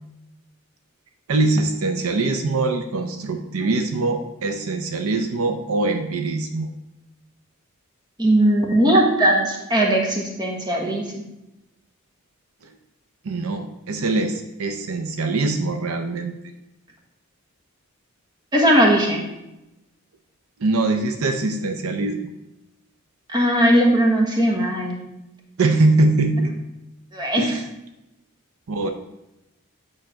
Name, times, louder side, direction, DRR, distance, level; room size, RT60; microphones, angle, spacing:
voice 1, 1.3-6.7 13.2-16.3 20.6-22.2 25.6-26.5 27.4-27.7 28.7-28.9, right 2 dB, 70° right, 6 dB, 0.6 m, -22 dB
voice 2, 8.2-11.2 18.5-19.2 23.3-25.0 27.1-27.6, right 1 dB, 20° right, -1 dB, 1.2 m, -18 dB
8.8 x 3.3 x 5.6 m, 0.93 s
head